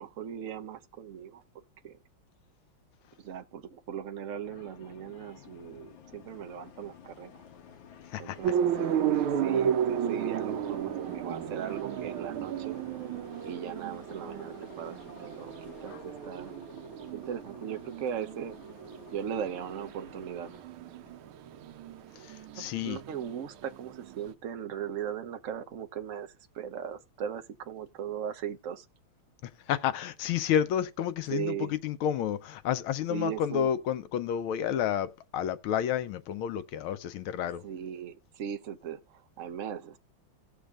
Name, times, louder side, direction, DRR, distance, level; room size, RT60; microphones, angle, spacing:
voice 1, 0.0-1.4 1.8-2.0 3.2-7.4 8.2-12.8 13.4-16.6 17.1-18.6 19.1-20.5 22.6-28.8 31.3-31.7 33.1-33.7 37.6-40.0, right 8 dB, 65° right, 0.7 m, -38 dB
sound 1, 4.4-20.6, left 8 dB, 70° left, 1.8 m, -53 dB
voice 2, 8.1-8.5 22.2-23.0 29.7-37.6, left 9 dB, 85° left, 1.6 m, -30 dB
sound 2, 8.4-24.3, right 9 dB, 85° right, 1.5 m, -34 dB
17.5 x 6.7 x 2.4 m
omnidirectional pair, 2.3 m